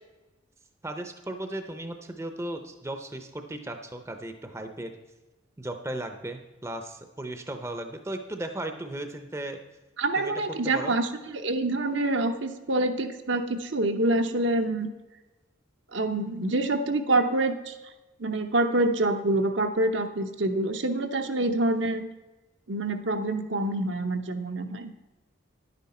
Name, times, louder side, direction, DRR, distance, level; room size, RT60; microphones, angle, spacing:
voice 1, 0.8-4.9 5.6-9.6 10.2-10.3 10.6-11.0, right 1 dB, 15° right, 6 dB, 0.6 m, -36 dB
voice 2, 10.0-14.9 15.9-17.7 18.2-22.0 22.7-24.9, right 2 dB, 65° right, 6 dB, 0.8 m, -26 dB
11.0 x 9.5 x 4.2 m, 1.1 s
head